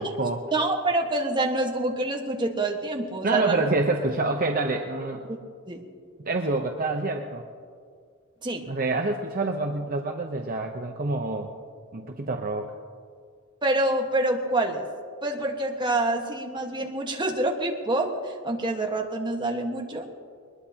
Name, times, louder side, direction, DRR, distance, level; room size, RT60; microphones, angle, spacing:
voice 1, 0.0-0.5 3.2-5.2 6.2-7.4 8.7-11.5 11.9-12.7, right 2 dB, 40° right, 3 dB, 0.8 m, -27 dB
voice 2, 0.5-3.6 5.3-5.4 5.7-5.8 8.4-8.6 13.6-14.8 15.2-20.1, right 2 dB, 20° right, 1 dB, 1.5 m, -26 dB
22.0 x 20.5 x 2.9 m, 2.1 s
head